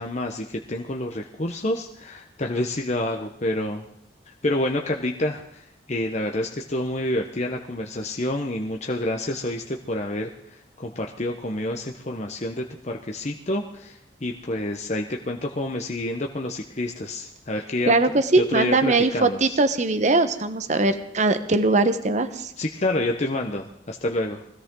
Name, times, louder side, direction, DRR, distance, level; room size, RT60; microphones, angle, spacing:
voice 1, 0.0-3.8 4.3-17.9 18.4-19.6 22.6-24.4, left 1 dB, 40° left, 2 dB, 1.0 m, -28 dB
voice 2, 17.9-22.5, right 2 dB, 40° right, 10 dB, 1.1 m, -21 dB
21.0 x 16.0 x 3.8 m, 0.77 s
head